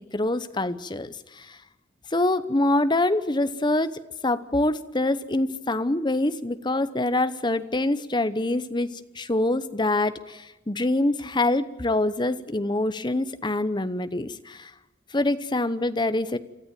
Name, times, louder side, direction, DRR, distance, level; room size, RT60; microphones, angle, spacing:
voice 1, 0.1-1.6 2.1-3.9 4.2-14.7 15.1-16.4, left 2 dB, 25° left, 12 dB, 0.9 m, -25 dB
28.0 x 13.5 x 9.2 m, 0.99 s
head